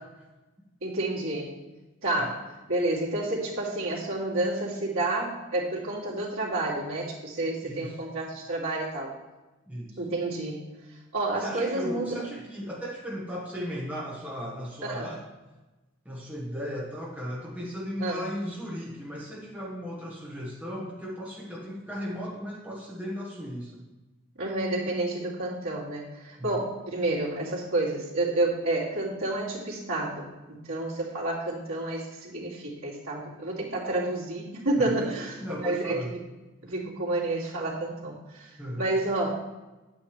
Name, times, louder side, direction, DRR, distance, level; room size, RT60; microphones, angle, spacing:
voice 1, 0.8-1.5 2.0-9.1 10.0-12.2 14.8-15.1 18.0-18.2 24.3-36.2 36.6-39.3, right 2 dB, 80° right, -6 dB, 2.8 m, -30 dB
voice 2, 7.6-7.9 9.7-10.0 11.4-15.2 16.0-23.8 26.4-26.6 34.8-36.1 38.6-38.9, equal, 5° right, -4 dB, 1.4 m, -36 dB
9.6 x 8.9 x 3.3 m, 1.1 s
head